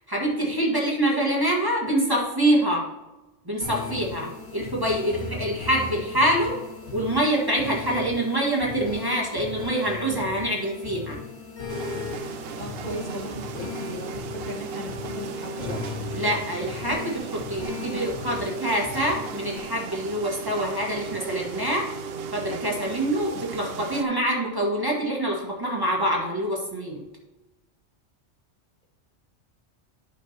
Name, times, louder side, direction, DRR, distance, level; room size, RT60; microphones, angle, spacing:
voice 1, 0.1-2.8 3.5-6.6 6.9-11.2 16.1-21.8 22.3-27.0, right 1 dB, 15° right, -3 dB, 1.7 m, -25 dB
sound 1, 3.6-19.6, left 4 dB, 60° left, 1.8 m, -37 dB
sound 2, 11.7-24.0, right 5 dB, 60° right, 0.7 m, -36 dB
voice 2, 12.6-15.9, equal, 35° left, -1 dB, 1.4 m, -37 dB
11.0 x 5.9 x 3.0 m, 1.1 s
omnidirectional pair, 1.3 m